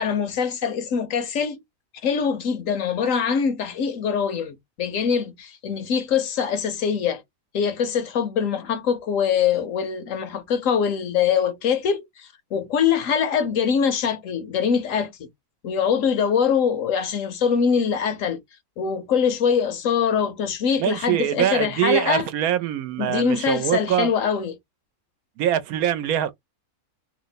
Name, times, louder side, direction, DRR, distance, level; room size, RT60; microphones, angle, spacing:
voice 1, 0.0-1.6 2.0-7.2 7.5-15.3 15.6-18.4 18.8-22.3 23.0-24.5, left 7 dB, 70° left, 0.9 m, -23 dB
voice 2, 20.8-24.1 25.4-26.3, right 11 dB, 80° right, 1.0 m, -23 dB
2.8 x 2.0 x 3.9 m
omnidirectional pair, 1.5 m